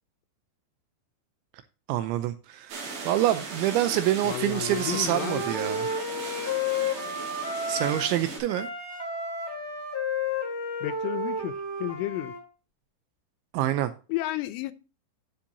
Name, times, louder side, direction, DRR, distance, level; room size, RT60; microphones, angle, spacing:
voice 1, 1.9-5.9 7.7-8.7 13.5-13.9, right 13 dB, 80° right, 2.8 m, -26 dB
sound 1, 2.7-8.4, right 4 dB, 60° right, 5.3 m, -38 dB
voice 2, 4.2-5.5 10.8-12.4 14.1-14.7, left 16 dB, 85° left, 3.0 m, -32 dB
Wind instrument woodwind instrument, 4.5-8.2 8.4-12.4, left 3 dB, 25° right, 0.5 m, -32 dB
14.5 x 5.7 x 2.7 m
omnidirectional pair, 5.8 m